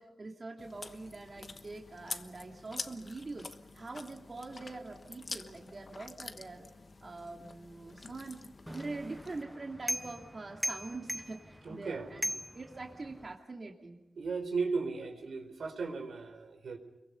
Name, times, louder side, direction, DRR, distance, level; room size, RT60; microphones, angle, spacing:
voice 1, 0.0-3.5 3.7-6.7 7.0-8.4 8.7-14.0, right 3 dB, 45° right, 1 dB, 2.5 m, -44 dB
Chewing mastication, 0.6-9.4, left 3 dB, 45° left, 1.2 m, -47 dB
sound 1, 8.7-13.4, equal, ahead, 0.8 m, -40 dB
voice 2, 11.6-12.1 14.2-16.8, right 4 dB, 85° right, 5 dB, 4.5 m, -36 dB
30.0 x 23.0 x 5.5 m, 0.91 s
wide cardioid pair, 100°, 0 cm